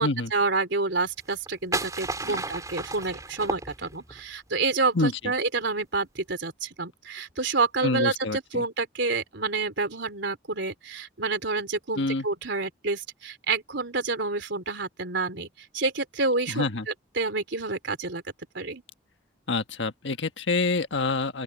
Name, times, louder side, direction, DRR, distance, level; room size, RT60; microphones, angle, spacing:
voice 1, 0.0-16.7 17.1-18.2 18.5-18.8, right 3 dB, 70° right, 3.3 m, -28 dB
sound 1, 1.2-4.2, right 2 dB, 20° right, 4.9 m, -33 dB
voice 2, 7.8-8.6 12.0-12.3 16.5-16.9 19.5-21.4, left 3 dB, 75° left, 1.4 m, -27 dB
open air
head